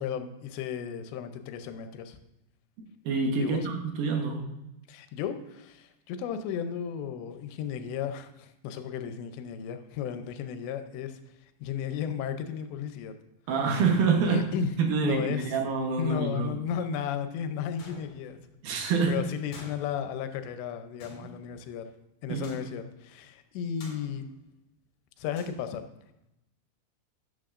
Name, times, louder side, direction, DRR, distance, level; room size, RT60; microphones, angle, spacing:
voice 1, 0.0-2.2 3.4-3.7 4.9-11.2 11.6-13.1 14.3-14.7 15.0-15.6 16.0-18.4 18.7-21.9 22.2-24.2 25.2-25.8, left 8 dB, 85° left, 8 dB, 3.0 m, -34 dB
voice 2, 3.1-4.4 13.5-14.4 14.8-16.5 18.6-19.2 21.2-21.3 22.3-22.5, right 5 dB, 70° right, 3 dB, 2.6 m, -26 dB
sound 1, 17.8-18.6 19.5-20.6 21.0-21.9 22.4-23.0 23.8-24.6 25.4-25.5, left 3 dB, 45° left, 2.6 m, -49 dB
12.5 x 8.9 x 2.5 m, 0.90 s
omnidirectional pair, 5.0 m